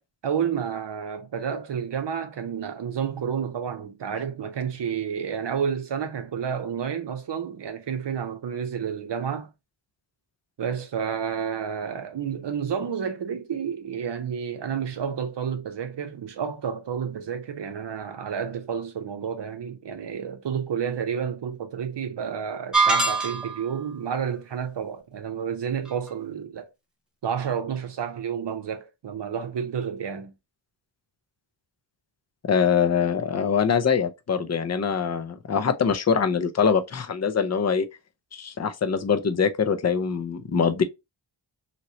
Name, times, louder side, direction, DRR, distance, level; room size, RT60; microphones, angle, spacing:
voice 1, 0.2-9.5 10.6-26.7 27.2-30.3, right 7 dB, 65° right, 0.6 m, -30 dB
sound 1, 22.7-23.7, right 3 dB, ahead, 0.7 m, -22 dB
voice 2, 32.5-37.9 38.3-40.8, left 6 dB, 35° left, 0.5 m, -23 dB
3.0 x 2.9 x 2.7 m
wide cardioid pair, 90°, 46 cm